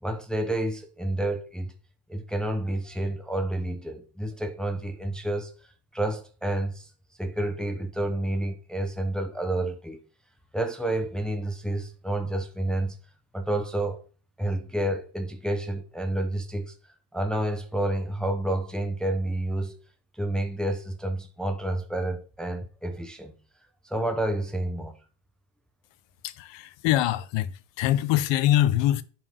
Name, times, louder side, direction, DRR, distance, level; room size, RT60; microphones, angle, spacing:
voice 1, 0.0-1.7 2.1-5.5 5.9-6.9 7.2-10.0 10.5-13.0 13.3-14.0 14.4-16.7 17.1-19.8 20.2-23.3 23.8-25.0, right 1 dB, ahead, 0.8 m, -29 dB
voice 2, 26.2-29.0, left 13 dB, 65° left, 0.9 m, -24 dB
7.8 x 4.6 x 6.1 m
cardioid pair, 130°, 46 cm